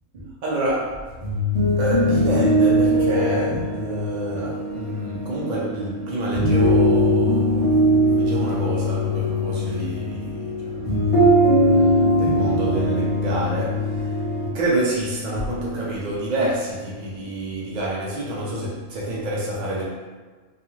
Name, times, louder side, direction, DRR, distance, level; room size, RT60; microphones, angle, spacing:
voice 1, 0.1-1.0 1.8-11.1 11.7-14.2 14.5-19.8, right 1 dB, 55° right, -5 dB, 0.5 m, -27 dB
sound 1, 1.1-14.5, equal, 40° left, 0.5 m, -21 dB
2.4 x 2.3 x 2.9 m, 1.4 s
omnidirectional pair, 1.3 m